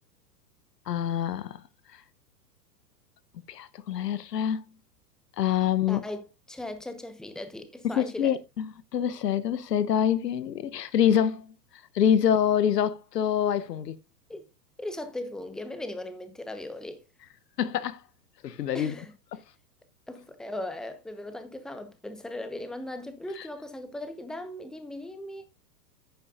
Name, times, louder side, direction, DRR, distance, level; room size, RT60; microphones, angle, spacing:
voice 1, 0.9-1.6 3.5-4.6 5.4-6.0 7.8-11.5 11.9-14.0 17.6-18.0 18.4-18.9 19.3-19.4 23.4-23.5, left 9 dB, 75° left, 1.0 m, -26 dB
voice 2, 5.9-8.4 14.3-14.5 14.8-17.0 18.7-19.1 20.1-25.5, left 1 dB, ahead, 1.0 m, -38 dB
11.0 x 9.0 x 2.5 m
hypercardioid pair, 110°, 49 cm